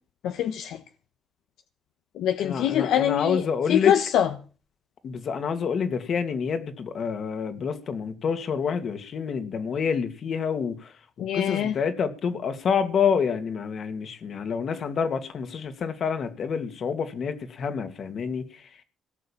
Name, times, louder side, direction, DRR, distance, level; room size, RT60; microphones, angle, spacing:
voice 1, 0.2-0.8 2.1-3.4 3.7-4.3 11.2-11.7, left 10 dB, 85° left, 1.2 m, -24 dB
voice 2, 2.4-3.9 5.0-10.9 11.3-18.7, left 6 dB, 55° left, 2.6 m, -28 dB
18.0 x 6.7 x 8.9 m
cardioid pair, 90°, 0 cm